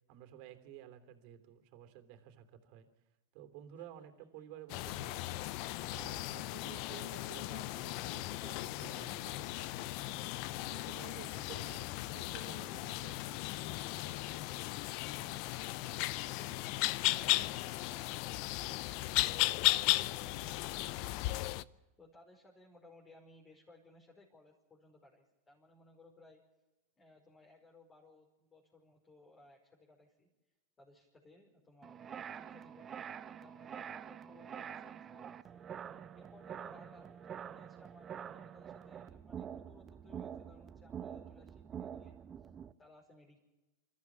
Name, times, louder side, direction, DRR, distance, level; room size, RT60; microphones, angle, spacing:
voice 1, 0.1-2.9 3.3-5.4 5.9-10.2 10.7-13.8, right 10 dB, 55° right, 7 dB, 3.1 m, -53 dB
sound 1, 3.8-16.7 17.1-19.4 19.7-20.5, left 2 dB, 90° left, 6.8 m, -64 dB
sound 2, 4.7-21.6, left 18 dB, 55° left, 0.6 m, -36 dB
voice 2, 22.0-26.4 27.0-30.3 30.8-32.9 33.4-35.6 36.1-42.1 42.8-43.4, left 2 dB, 20° left, 0 dB, 5.1 m, -62 dB
sound 3, 31.8-42.7, right 8 dB, 30° right, 1.0 m, -46 dB
27.5 x 14.0 x 7.3 m, 1.1 s
hypercardioid pair, 95°, 0 cm